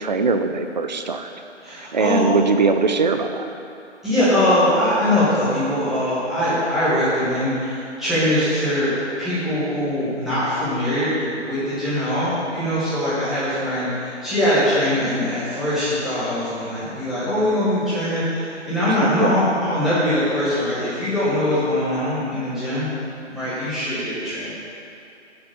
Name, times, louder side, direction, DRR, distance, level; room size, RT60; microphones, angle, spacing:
voice 1, 0.0-1.3 1.9-3.5 18.9-19.4, right 4 dB, 40° right, 7 dB, 0.4 m, -21 dB
voice 2, 1.6-2.3 4.0-8.9 9.2-22.9 23.3-24.5, left 1 dB, ahead, -14 dB, 1.2 m, -22 dB
7.0 x 6.7 x 6.9 m, 2.6 s
figure-of-eight pair, 160°, 36 cm